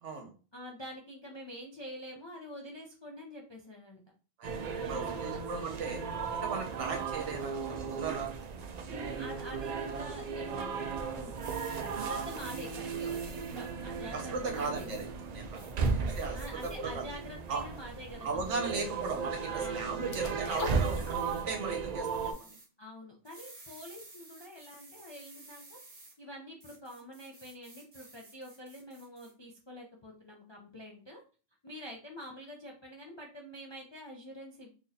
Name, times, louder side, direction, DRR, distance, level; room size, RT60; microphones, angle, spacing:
voice 1, 0.0-0.3 4.4-6.0 6.4-8.3 14.1-17.1 17.5-17.6 18.2-22.5, right 4 dB, 70° right, 4 dB, 1.1 m, -37 dB
voice 2, 0.5-4.0 4.8-5.4 8.8-10.9 11.1-11.4 11.8-14.9 16.3-18.7 19.5-20.0 22.8-31.2 31.6-34.7, equal, 40° left, -1 dB, 0.3 m, -46 dB
sound 1, 4.4-22.3, right 5 dB, 85° right, 0.3 m, -36 dB
sound 2, 11.3-13.7 14.5-15.0 15.5-16.8 17.2-17.8 18.4-18.7 20.5-21.4 22.0-22.7 23.2-26.1 26.6-29.3, right 2 dB, 40° right, 1.3 m, -54 dB
sound 3, 20.1-21.7 22.0-22.1, left 2 dB, 70° left, 1.2 m, -38 dB
3.0 x 2.7 x 3.9 m, 0.36 s
omnidirectional pair, 1.3 m